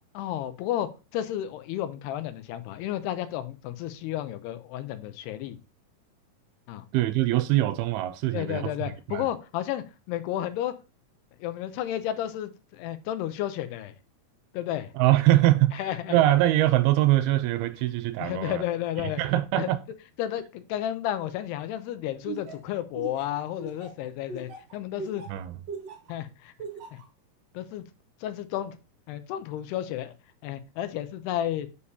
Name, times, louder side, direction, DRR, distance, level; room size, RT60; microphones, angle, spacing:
voice 1, 0.1-5.6 6.7-6.8 8.3-10.7 11.4-13.9 14.5-14.9 15.8-16.2 18.2-19.2 19.6-19.7 20.2-25.2 26.1-26.5 26.9-27.0 27.5-27.8 28.2-28.8 29.1-30.1 30.4-31.7, left 12 dB, 85° left, 2.9 m, -32 dB
voice 2, 6.9-9.3 15.0-18.6 19.2-19.8 25.3-25.6, right 15 dB, 80° right, 2.4 m, -23 dB
Laughter, 22.3-26.1 26.6-27.0, right 4 dB, 55° right, 1.9 m, -39 dB
7.0 x 6.7 x 2.7 m
omnidirectional pair, 4.6 m